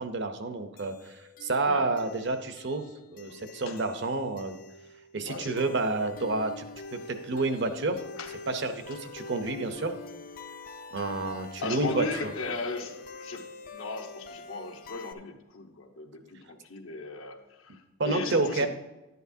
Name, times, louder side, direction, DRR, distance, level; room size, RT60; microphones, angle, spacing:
voice 1, 0.0-4.6 5.1-6.7 6.9-8.0 8.5-10.0 10.9-12.3 18.0-18.7, right 3 dB, 55° right, 8 dB, 0.7 m, -29 dB
sound 1, 0.8-15.1, left 3 dB, 40° left, 0.5 m, -45 dB
voice 2, 5.2-5.6 8.2-8.3 11.6-18.7, left 3 dB, 75° left, 3 dB, 1.0 m, -37 dB
11.0 x 9.3 x 2.7 m, 1.0 s
head